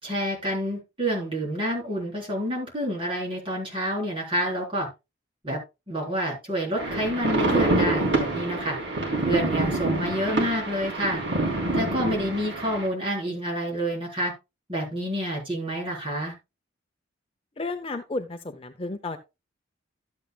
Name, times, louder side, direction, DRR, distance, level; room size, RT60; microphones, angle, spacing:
voice 1, 0.0-4.9 5.4-5.6 5.9-8.8 9.2-11.2 11.7-14.3 14.7-16.3, equal, 25° right, -2 dB, 3.9 m, -28 dB
sound 1, 6.8-12.9, right 2 dB, 65° right, 3.8 m, -26 dB
voice 2, 17.6-19.2, left 2 dB, 30° left, 7 dB, 0.6 m, -32 dB
12.5 x 8.1 x 2.3 m, 0.25 s
head